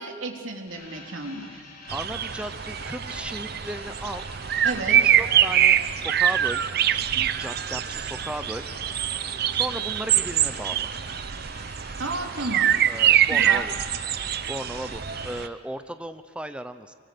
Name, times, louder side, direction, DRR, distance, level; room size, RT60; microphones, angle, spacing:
voice 1, 0.0-1.6 4.6-5.0 12.0-12.7 13.3-13.7, right 2 dB, 85° right, 2 dB, 3.2 m, -32 dB
sound 1, 0.7-15.4, left 3 dB, 45° left, 4.8 m, -46 dB
voice 2, 1.9-4.2 5.0-6.6 6.9-8.6 9.5-10.9 12.9-13.7 14.5-16.9, right 1 dB, 5° right, 9 dB, 0.8 m, -36 dB
sound 2, 1.9-15.5, right 10 dB, 50° right, 0.6 m, -24 dB
26.0 x 23.5 x 6.9 m, 2.3 s
head